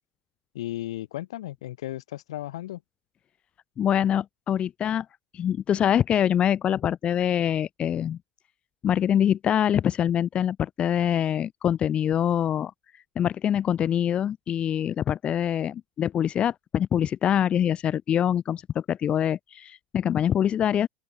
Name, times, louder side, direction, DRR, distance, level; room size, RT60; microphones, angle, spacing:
voice 1, 0.5-2.8, left 14 dB, 85° left, 1.5 m, -35 dB
voice 2, 3.8-5.1 5.3-8.2 8.8-12.7 13.2-20.9, left 9 dB, 35° left, 0.7 m, -24 dB
open air
hypercardioid pair, 95°, 3 cm